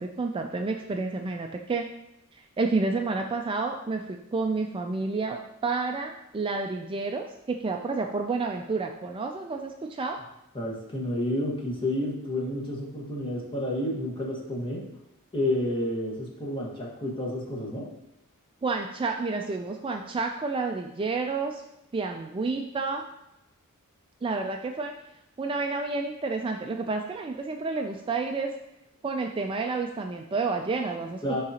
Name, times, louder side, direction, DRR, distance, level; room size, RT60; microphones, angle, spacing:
voice 1, 0.0-1.9 2.3-10.2 18.6-21.6 21.9-23.1 24.2-24.9 25.4-28.6 29.0-31.4, right 3 dB, 25° right, 3 dB, 0.3 m, -30 dB
voice 2, 10.5-14.9 15.3-17.9 31.2-31.4, left 1 dB, 25° left, -3 dB, 1.5 m, -30 dB
11.0 x 3.9 x 2.9 m, 0.87 s
head